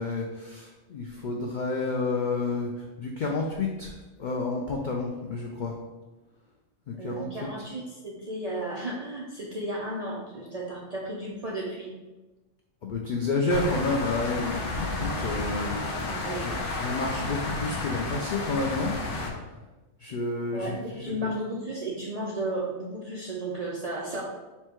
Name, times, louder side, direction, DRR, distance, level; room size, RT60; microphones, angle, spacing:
voice 1, 0.0-3.9 4.2-5.7 6.9-7.5 12.8-18.9 20.0-21.1, left 3 dB, 90° left, 0 dB, 0.4 m, -30 dB
voice 2, 7.0-11.9 16.1-16.6 20.5-24.2, right 1 dB, 60° right, -4 dB, 0.4 m, -34 dB
sound 1, 13.5-19.3, left 2 dB, 55° left, 0.7 m, -31 dB
4.3 x 2.2 x 4.4 m, 1.1 s
omnidirectional pair, 1.4 m